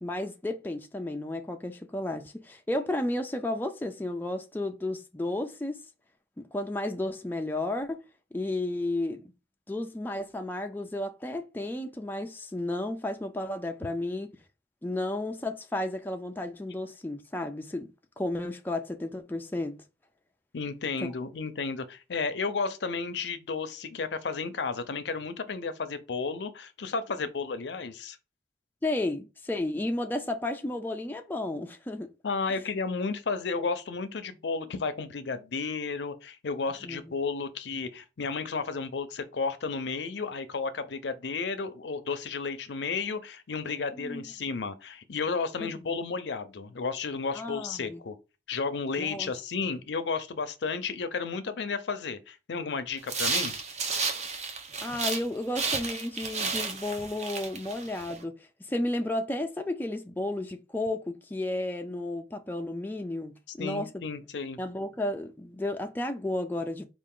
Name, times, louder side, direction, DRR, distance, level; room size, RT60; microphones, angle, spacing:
voice 1, 0.0-5.8 6.4-8.0 8.3-9.2 9.7-14.3 14.8-17.9 18.2-19.8 21.0-21.1 28.8-32.1 36.8-37.1 43.9-44.2 45.6-45.7 47.3-48.0 49.0-49.3 54.8-58.4 58.6-64.0 64.6-66.8, left 1 dB, 10° left, 0.3 m, -33 dB
voice 2, 20.5-28.2 32.2-48.1 48.5-53.5 63.6-64.6, left 4 dB, 75° left, 0.5 m, -33 dB
sound 1, 53.0-55.3 55.5-58.1, right 4 dB, 40° right, 0.7 m, -32 dB
4.7 x 2.4 x 3.7 m
head